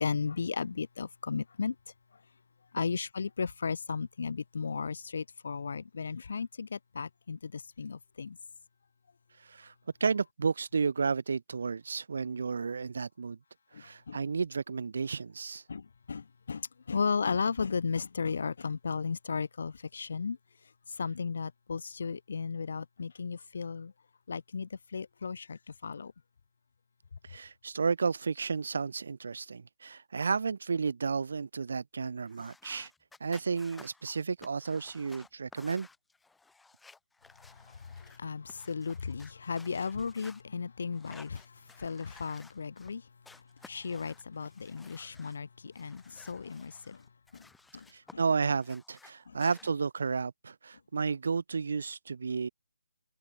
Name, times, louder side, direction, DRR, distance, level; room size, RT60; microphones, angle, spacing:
voice 1, 0.0-1.7 2.7-8.4 13.7-14.2 15.7-20.4 20.9-23.9 24.3-26.1 37.7-43.0 43.6-47.0 47.3-47.5 47.7-47.9 48.1-48.2 49.3-49.4, left 5 dB, 45° left, 1.5 m, -35 dB
voice 2, 9.4-9.7 10.0-13.4 13.7-15.6 27.2-32.9 33.2-35.9 47.9-52.5, right 5 dB, 45° right, 0.9 m, -32 dB
sound 1, 32.3-38.2 38.5-40.4 40.9-42.9 43.2-45.4 45.7-48.1 48.4-49.7, left 3 dB, ahead, 2.8 m, -56 dB
hypercardioid pair, 180°, 0 cm